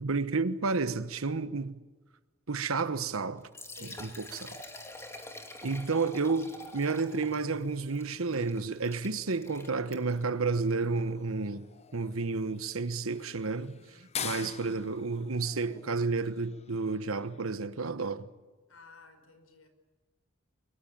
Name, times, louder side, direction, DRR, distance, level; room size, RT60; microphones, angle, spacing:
voice 1, 0.0-1.8 2.5-3.5 4.0-4.6 5.6-11.7 11.9-18.3, right 4 dB, 80° right, 1.1 m, -31 dB
Liquid, 3.4-10.3, left 1 dB, 15° left, 3.0 m, -47 dB
voice 2, 3.7-4.1 18.7-19.7, left 4 dB, 80° left, 5.2 m, -53 dB
sound 1, 5.9-17.6, left 7 dB, 30° left, 0.8 m, -47 dB
24.5 x 23.0 x 8.7 m
head